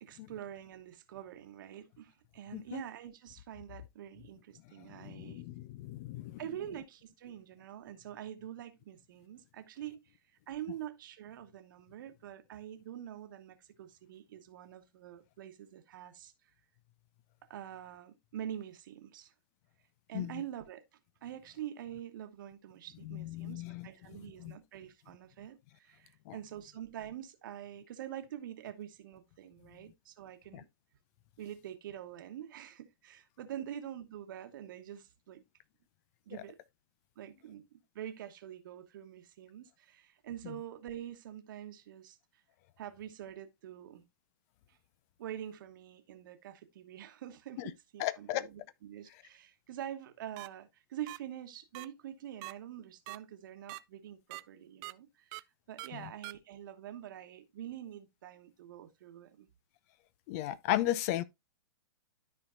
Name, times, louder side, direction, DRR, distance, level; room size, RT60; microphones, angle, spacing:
voice 1, 0.0-5.4 6.4-10.0 10.5-16.3 17.5-19.3 20.1-20.8 21.2-30.7 31.4-35.4 36.3-36.6 37.2-42.2 42.8-44.0 44.7-44.8 45.2-59.5, right 11 dB, 60° right, 1.2 m, -46 dB
voice 2, 4.8-6.4 20.1-20.4 23.0-23.9 24.4-24.5 26.3-26.4 30.5-30.6 36.3-36.4 40.4-40.5 47.6-47.7 48.0-48.4 55.9-56.1 60.3-61.2, left 14 dB, 40° left, 0.5 m, -36 dB
sound 1, 50.4-50.5 51.1-51.2 51.7-51.9 52.4-52.5 53.1-53.2 53.7-53.8 54.3-54.4 54.8-54.9 55.3-55.4 55.8-55.9 56.2-56.3, right 23 dB, 35° right, 0.4 m, -42 dB
13.0 x 4.4 x 2.5 m
hypercardioid pair, 120°, 12 cm